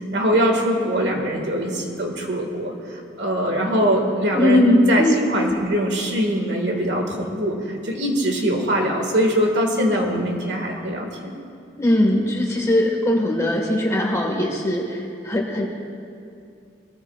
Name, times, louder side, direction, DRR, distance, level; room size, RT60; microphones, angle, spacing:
voice 1, 0.1-2.7 3.2-5.0 5.3-11.1, equal, 65° right, 1 dB, 1.8 m, -22 dB
voice 2, 4.3-5.2 11.8-15.7, left 1 dB, 15° left, 0 dB, 1.5 m, -20 dB
21.5 x 14.0 x 2.4 m, 2.5 s
head